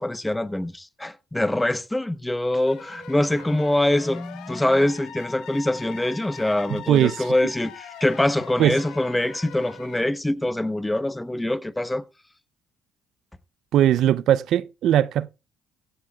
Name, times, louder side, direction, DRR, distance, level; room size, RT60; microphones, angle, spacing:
voice 1, 0.0-12.0, left 1 dB, 10° left, 0.9 m, -24 dB
sound 1, 2.7-10.0, left 6 dB, 75° left, 2.1 m, -41 dB
voice 2, 6.7-7.3 8.6-8.8 13.7-15.3, right 11 dB, 65° right, 0.5 m, -20 dB
16.0 x 12.5 x 2.3 m
supercardioid pair, 80°, 0 cm